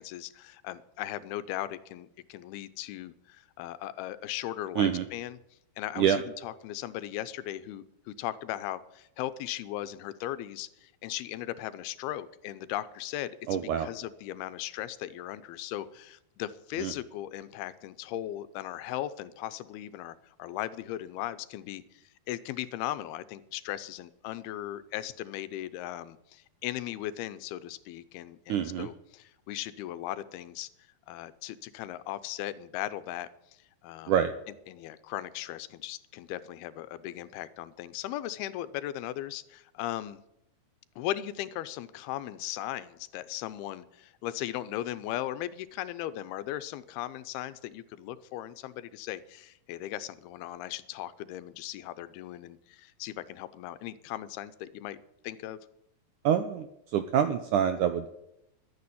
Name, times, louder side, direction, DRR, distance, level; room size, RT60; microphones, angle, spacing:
voice 1, 0.0-5.4 5.8-13.4 13.8-30.7 31.1-33.3 33.8-34.1 34.7-40.2 41.0-55.0 55.2-55.6, left 13 dB, 90° left, 14 dB, 2.7 m, -38 dB
voice 2, 13.5-13.9 16.8-16.9 28.5-28.9 34.1-34.3 56.2-56.7 56.9-58.1, right 9 dB, 75° right, 9 dB, 1.9 m, -26 dB
12.0 x 9.6 x 10.0 m, 0.80 s
omnidirectional pair, 4.4 m